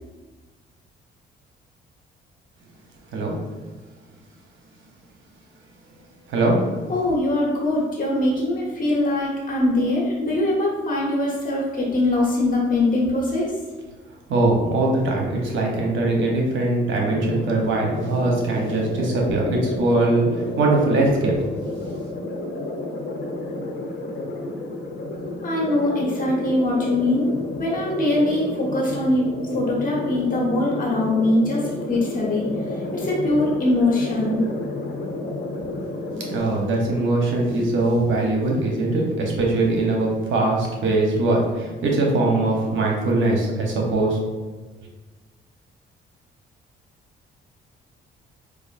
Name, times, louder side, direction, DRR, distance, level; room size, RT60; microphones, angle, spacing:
voice 1, 6.9-13.5 25.4-27.3 27.6-34.4, left 1 dB, 45° left, -3 dB, 1.3 m, -22 dB
voice 2, 14.3-21.3 36.3-44.2, right 2 dB, 75° right, -1 dB, 0.9 m, -21 dB
sound 1, 16.9-36.4, left 2 dB, 60° left, 0.7 m, -31 dB
4.6 x 2.4 x 2.5 m, 1.3 s
cardioid pair, 90°, 20 cm